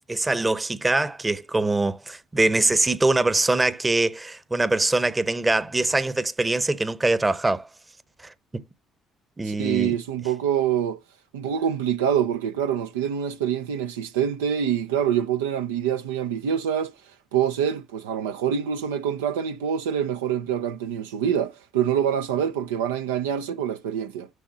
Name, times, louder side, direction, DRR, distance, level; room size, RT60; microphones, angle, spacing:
voice 1, 0.1-7.7 8.5-8.6 9.4-10.0, right 2 dB, 20° right, 0.8 m, -23 dB
voice 2, 9.4-11.0 11.3-16.9 17.3-24.3, right 9 dB, 90° right, 0.5 m, -25 dB
6.4 x 6.0 x 4.1 m
hypercardioid pair, 55°, 0 cm